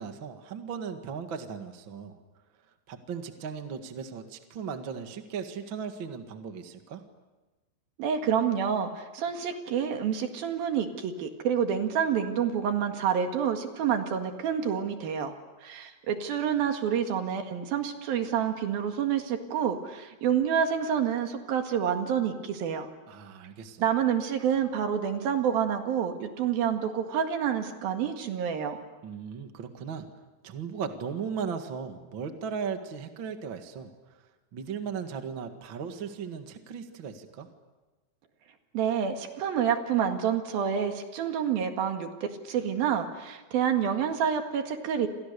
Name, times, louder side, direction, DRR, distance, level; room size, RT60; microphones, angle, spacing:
voice 1, 0.0-2.1 2.9-7.0 23.1-23.8 29.0-30.0 30.4-33.9 34.5-37.5, right 6 dB, 45° right, 6 dB, 1.6 m, -37 dB
voice 2, 8.0-15.3 15.6-22.9 23.8-28.8 38.7-42.1 42.5-45.1, right 8 dB, 65° right, 5 dB, 3.5 m, -28 dB
30.0 x 26.5 x 6.8 m, 1.2 s
omnidirectional pair, 4.8 m